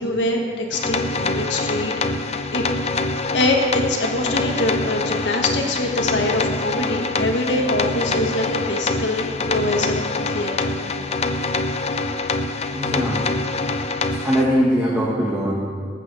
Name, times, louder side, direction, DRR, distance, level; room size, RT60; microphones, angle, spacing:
voice 1, 0.0-2.2 2.5-2.6 3.3-10.8, left 2 dB, 80° left, 1 dB, 1.2 m, -24 dB
sound 1, 0.7-14.4, left 3 dB, 35° left, 0.5 m, -25 dB
voice 2, 12.7-13.3 14.2-15.5, equal, 10° right, -6 dB, 1.4 m, -21 dB
18.5 x 7.7 x 3.4 m, 2.1 s
head